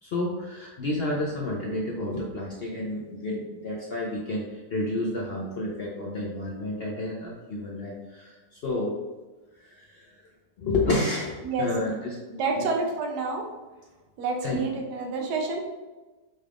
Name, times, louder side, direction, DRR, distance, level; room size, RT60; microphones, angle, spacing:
voice 1, 0.0-8.9 9.6-10.2 10.6-12.2 12.6-12.7 14.4-14.6, left 2 dB, 70° left, -2 dB, 0.5 m, -30 dB
voice 2, 12.4-13.4 14.2-15.6, right 4 dB, 80° right, 1 dB, 1.3 m, -28 dB
5.5 x 2.4 x 3.3 m, 1.2 s
omnidirectional pair, 1.7 m